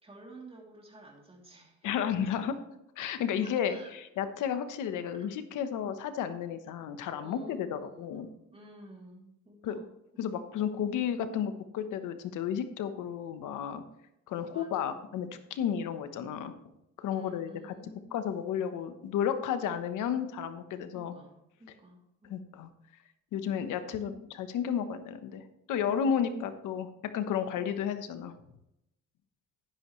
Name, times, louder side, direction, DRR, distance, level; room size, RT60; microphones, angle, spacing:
voice 1, 0.0-2.5 3.4-3.9 5.2-5.3 7.2-9.9 10.1-10.3 14.5-15.0 17.1-18.3 20.9-22.4 24.0-24.3, right 1 dB, 20° right, -1 dB, 3.1 m, -52 dB
voice 2, 1.8-2.6 3.0-8.3 9.6-9.8 10.2-13.8 14.3-16.5 17.0-17.5 18.1-21.1 22.3-22.7 23.3-26.9 27.1-28.3, left 8 dB, 90° left, 10 dB, 1.1 m, -32 dB
10.5 x 10.5 x 3.2 m, 0.84 s
cardioid pair, 90°, 30 cm